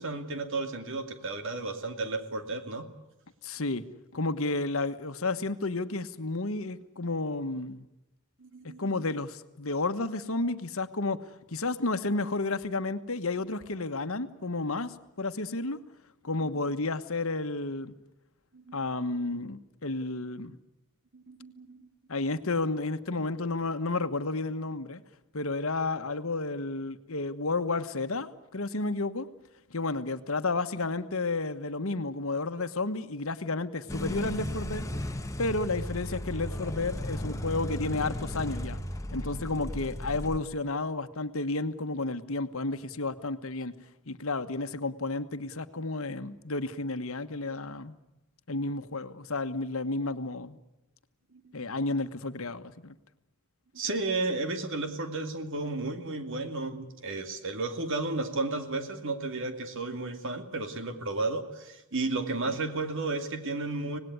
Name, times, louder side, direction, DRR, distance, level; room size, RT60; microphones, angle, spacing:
voice 1, 0.0-2.9 8.4-9.1 16.5-16.6 18.5-19.2 20.1-20.2 21.1-21.8 53.7-64.0, right 3 dB, 60° right, 7 dB, 2.6 m, -33 dB
voice 2, 3.4-3.8 4.1-7.9 8.8-11.2 11.5-15.8 16.2-17.9 18.7-20.6 22.1-25.0 25.3-29.3 29.7-34.9 35.4-38.8 39.1-43.7 44.1-47.9 48.5-50.6 51.5-53.0, left 3 dB, 65° left, 10 dB, 1.3 m, -31 dB
sound 1, 33.9-40.4, left 1 dB, 15° left, 1.2 m, -35 dB
25.5 x 19.0 x 9.7 m, 0.95 s
head